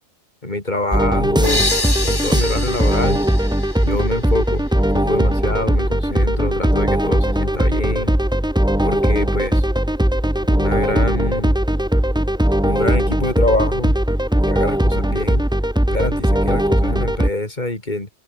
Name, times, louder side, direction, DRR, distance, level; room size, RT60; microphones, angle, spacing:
voice 1, 0.4-1.7 2.0-3.2 3.8-8.2 8.8-9.7 10.5-11.6 12.6-13.9 14.5-15.4 15.9-18.1, left 2 dB, 35° left, 4.1 m, -25 dB
sound 1, 0.9-17.3, equal, 5° right, 1.1 m, -18 dB
sound 2, 1.4-5.0, left 2 dB, 20° left, 1.4 m, -26 dB
open air
omnidirectional pair, 1.3 m